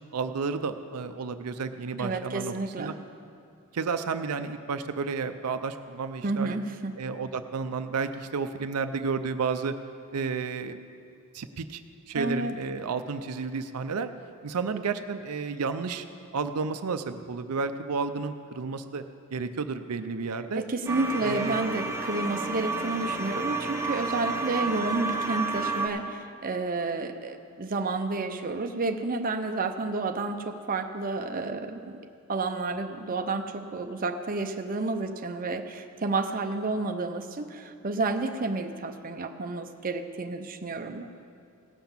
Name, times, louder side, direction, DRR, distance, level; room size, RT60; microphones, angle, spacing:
voice 1, 0.1-2.9 3.7-6.6 7.0-9.7 10.1-10.8 11.3-11.8 12.1-14.1 14.4-16.0 16.3-19.0 19.3-20.6 21.2-21.6, right 5 dB, 85° right, 9 dB, 0.5 m, -31 dB
voice 2, 2.0-3.0 6.2-7.0 12.1-12.5 20.5-32.0 32.3-41.1, right 3 dB, 40° right, 6 dB, 0.6 m, -30 dB
sound 1, 20.9-25.9, right 3 dB, 10° right, 1.1 m, -31 dB
17.0 x 5.9 x 7.2 m, 2.4 s
head